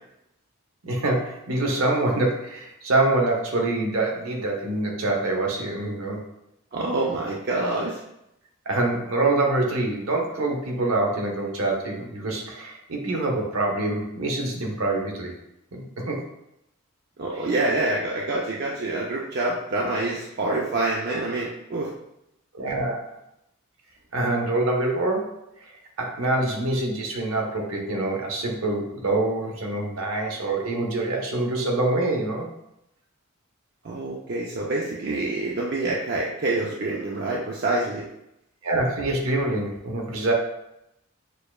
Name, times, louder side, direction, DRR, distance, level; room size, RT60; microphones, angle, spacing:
voice 1, 0.8-6.2 8.7-15.3 15.7-16.2 17.4-17.5 22.5-23.1 24.1-25.3 25.6-25.7 26.0-32.5 38.6-40.3, right 2 dB, 70° right, 0 dB, 0.8 m, -25 dB
voice 2, 6.7-8.0 17.2-21.9 33.8-38.1, right 2 dB, 50° right, -3 dB, 0.4 m, -26 dB
6.6 x 2.2 x 2.3 m, 0.83 s
head